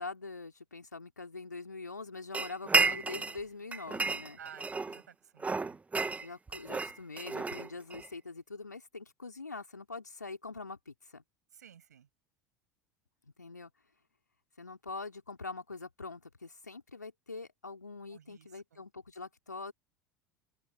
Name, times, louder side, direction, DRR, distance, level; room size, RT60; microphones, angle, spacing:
voice 1, 0.0-4.4 6.2-11.2 13.4-13.7 14.6-19.7, left 3 dB, 85° left, 3.1 m, -44 dB
sound 1, 2.3-3.4 3.7-5.0 5.4-8.1, right 4 dB, 15° right, 1.6 m, -31 dB
voice 2, 4.4-5.8 11.5-12.1 18.1-18.8, right 8 dB, 75° right, 7.8 m, -53 dB
open air
figure-of-eight pair, 75°, 9 cm